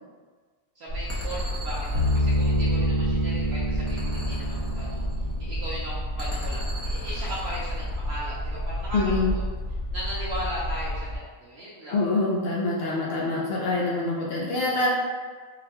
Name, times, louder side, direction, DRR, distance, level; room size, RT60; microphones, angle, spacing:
voice 1, 0.8-5.0 5.4-9.4 9.9-12.0, equal, 60° right, -7 dB, 0.8 m, -37 dB
sound 1, 0.9-11.2, equal, 85° left, 1.1 m, -31 dB
sound 2, 1.1-3.4 3.9-5.5 6.2-8.1, equal, 15° left, 0.5 m, -42 dB
sound 3, 1.9-7.1, equal, 90° right, 1.0 m, -28 dB
voice 2, 8.9-9.3 11.9-15.0, left 2 dB, 65° left, -4 dB, 0.6 m, -25 dB
3.9 x 2.2 x 2.8 m, 1.5 s
omnidirectional pair, 1.4 m